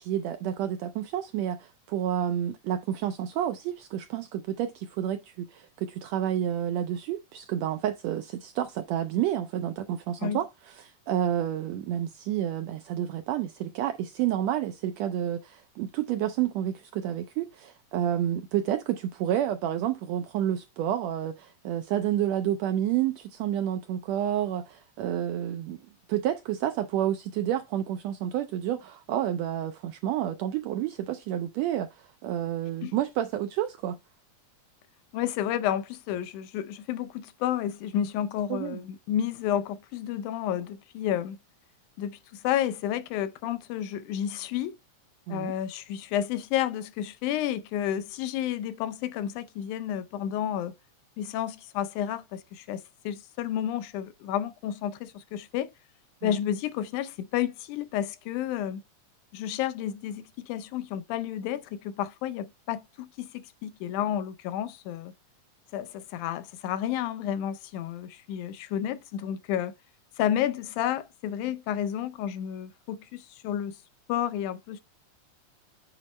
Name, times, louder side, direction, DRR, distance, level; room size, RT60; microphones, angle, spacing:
voice 1, 0.0-34.0 38.5-38.8 45.3-45.5 56.2-56.4, right 11 dB, 80° right, 1.5 m, -30 dB
voice 2, 35.1-41.4 42.0-44.8 45.3-50.7 51.2-55.7 56.2-58.8 59.3-65.1 65.7-69.7 70.2-73.8 74.1-74.8, left 10 dB, 85° left, 2.1 m, -31 dB
8.1 x 3.1 x 4.1 m
omnidirectional pair, 3.5 m